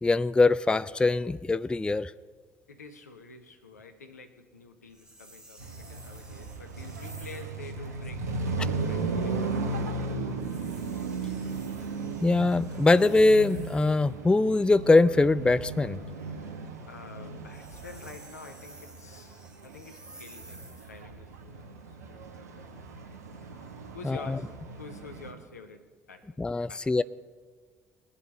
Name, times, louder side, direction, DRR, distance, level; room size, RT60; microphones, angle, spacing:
voice 1, 0.0-2.1 12.2-16.0 24.0-24.4 26.4-27.0, left 3 dB, 10° left, 0.4 m, -22 dB
voice 2, 2.7-9.8 10.2-10.4 16.8-21.8 22.1-22.2 23.9-26.4 26.6-26.9, left 4 dB, 85° left, 0.9 m, -48 dB
sound 1, 4.9-7.6 10.3-14.1 17.3-21.0, right 1 dB, 10° right, 2.6 m, -52 dB
sound 2, 5.6-25.3, right 3 dB, 80° right, 1.1 m, -36 dB
22.0 x 7.5 x 4.2 m
figure-of-eight pair, 50°, 8 cm